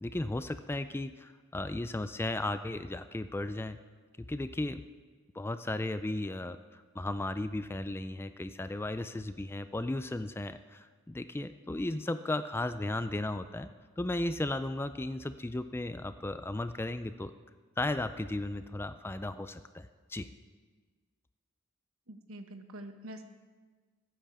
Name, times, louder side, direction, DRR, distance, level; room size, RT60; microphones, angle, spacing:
voice 1, 0.0-3.8 4.2-4.8 5.3-13.7 14.0-17.3 17.8-20.3, left 2 dB, 10° left, 11 dB, 0.3 m, -35 dB
voice 2, 22.1-23.2, right 1 dB, 70° right, 7 dB, 1.2 m, -45 dB
15.0 x 9.1 x 6.8 m, 1.5 s
head